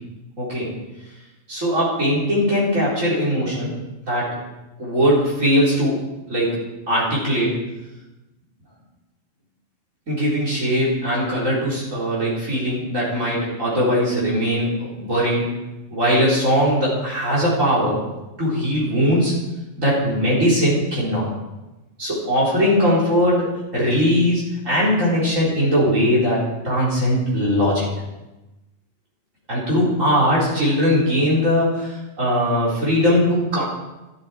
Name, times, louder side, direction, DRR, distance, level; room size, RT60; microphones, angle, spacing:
voice 1, 0.4-0.7 1.5-3.7 4.1-4.4 4.8-6.0 6.3-6.6 6.9-7.5 10.1-15.5 15.9-18.0 18.4-19.3 19.8-21.3 22.0-23.5 23.7-27.9 29.5-33.6, equal, 70° right, -6 dB, 4.5 m, -20 dB
12.0 x 12.0 x 4.4 m, 1.0 s
omnidirectional pair, 1.4 m